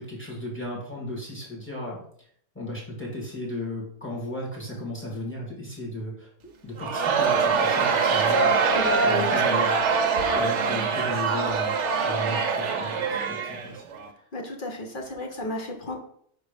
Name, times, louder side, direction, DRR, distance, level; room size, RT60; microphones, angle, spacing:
voice 1, 0.0-2.0 2.5-6.3 6.6-8.5 9.0-9.8 10.3-11.7 12.0-13.8, left 1 dB, 10° left, -4 dB, 2.0 m, -35 dB
Crowd, 6.8-14.1, right 5 dB, 55° right, 1.0 m, -23 dB
voice 2, 8.7-9.3 14.3-16.0, left 2 dB, 35° left, 1 dB, 1.1 m, -32 dB
5.6 x 3.9 x 5.1 m, 0.65 s
omnidirectional pair, 1.6 m